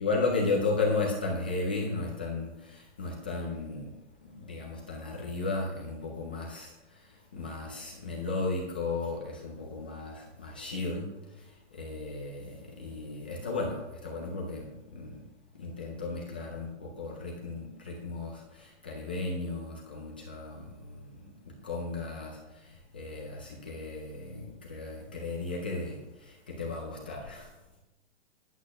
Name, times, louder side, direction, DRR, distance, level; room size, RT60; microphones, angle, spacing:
voice 1, 0.0-15.2 15.5-27.5, left 3 dB, 10° left, -3 dB, 0.4 m, -35 dB
11.0 x 8.3 x 6.0 m, 0.98 s
hypercardioid pair, 170°, 35 cm